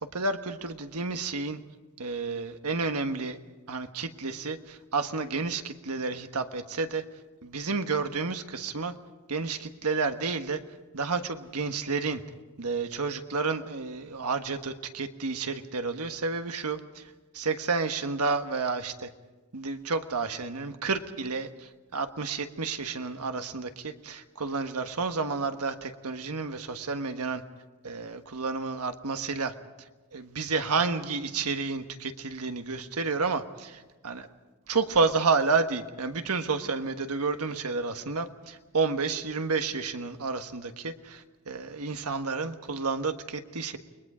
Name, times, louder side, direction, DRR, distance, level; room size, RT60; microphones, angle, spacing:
voice 1, 0.1-1.6 2.0-3.4 3.7-7.0 7.4-8.9 9.3-10.6 10.9-12.2 12.6-19.1 19.5-27.4 27.8-29.5 30.1-34.3 34.7-43.8, right 4 dB, 85° right, 7 dB, 1.4 m, -30 dB
29.5 x 21.5 x 5.0 m, 1.2 s
head